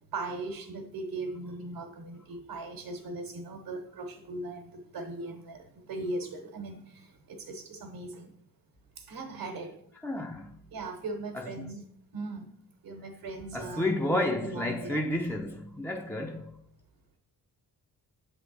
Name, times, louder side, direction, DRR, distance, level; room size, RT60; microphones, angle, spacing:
voice 1, 0.1-4.6 4.9-5.6 5.9-6.7 7.5-8.3 9.1-9.7 10.7-11.8 12.1-12.5 12.8-15.0, right 2 dB, 70° right, 1.0 m, -38 dB
voice 2, 10.0-10.5 11.3-11.7 13.5-16.5, left 1 dB, 5° left, 0.4 m, -31 dB
7.2 x 3.5 x 3.9 m
cardioid pair, 65°, 40 cm